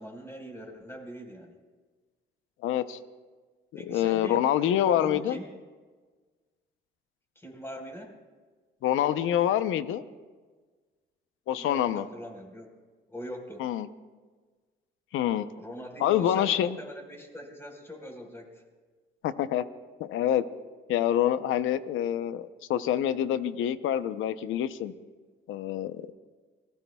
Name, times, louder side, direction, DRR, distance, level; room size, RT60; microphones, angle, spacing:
voice 1, 0.0-1.5 3.7-4.4 4.8-5.5 7.3-8.1 11.6-12.7 13.1-13.6 15.6-18.6, equal, 10° left, 1 dB, 4.4 m, -42 dB
voice 2, 2.6-3.0 3.9-5.4 8.8-10.0 11.5-12.1 13.6-13.9 15.1-15.5 16.0-16.8 19.2-19.6 20.0-20.4 20.9-24.9 25.5-26.1, left 11 dB, 85° left, 12 dB, 0.7 m, -26 dB
27.5 x 19.5 x 2.3 m, 1.4 s
cardioid pair, 90°, 20 cm